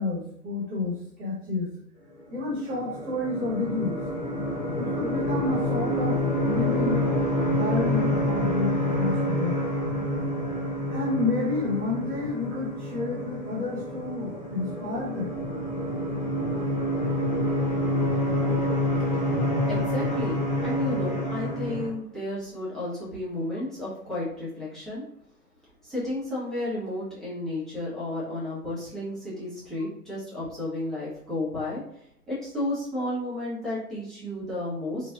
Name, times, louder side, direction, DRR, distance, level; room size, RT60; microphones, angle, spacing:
voice 1, 0.0-1.7 2.3-4.0 4.8-7.0 7.4-9.6 10.9-15.3, left 3 dB, 20° right, -7 dB, 1.3 m, -30 dB
sound 1, 2.4-21.9, left 1 dB, 25° left, 0.7 m, -27 dB
voice 2, 19.7-25.0 25.8-35.1, left 1 dB, ahead, -11 dB, 0.9 m, -32 dB
4.0 x 2.5 x 2.4 m, 0.73 s
figure-of-eight pair, 125°, 49 cm